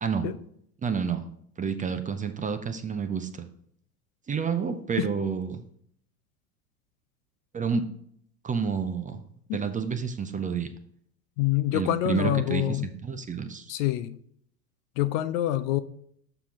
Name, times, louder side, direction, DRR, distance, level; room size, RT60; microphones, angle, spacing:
voice 1, 0.8-1.2 1.6-3.4 4.3-5.6 7.5-7.8 8.4-9.2 9.5-10.7 11.7-13.7, right 6 dB, 15° right, 8 dB, 0.5 m, -29 dB
voice 2, 11.4-12.9 13.7-14.2 15.0-15.8, left 14 dB, 60° left, 14 dB, 0.6 m, -26 dB
6.9 x 5.8 x 3.6 m, 0.65 s
hypercardioid pair, 85°, 46 cm